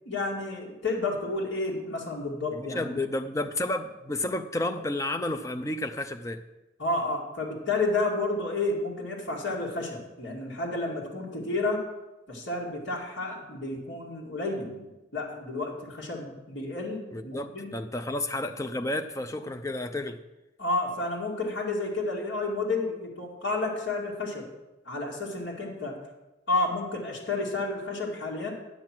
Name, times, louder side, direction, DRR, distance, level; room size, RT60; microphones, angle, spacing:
voice 1, 0.1-3.0 6.8-11.8 12.3-17.7 20.6-24.5 24.8-26.0 26.5-28.5, left 2 dB, 75° left, -3 dB, 2.4 m, -31 dB
voice 2, 2.5-6.4 17.1-20.2, left 1 dB, 15° left, 8 dB, 0.5 m, -31 dB
9.5 x 7.7 x 6.0 m, 1.0 s
head